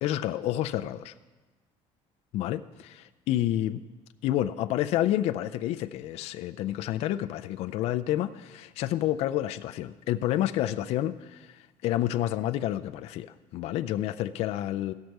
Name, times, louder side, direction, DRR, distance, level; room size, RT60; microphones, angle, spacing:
voice 1, 0.0-1.1 2.3-3.8 4.2-13.3 13.5-14.9, left 13 dB, 60° left, 8 dB, 0.4 m, -29 dB
15.5 x 6.4 x 4.6 m, 1.3 s
cardioid pair, 140°, 12 cm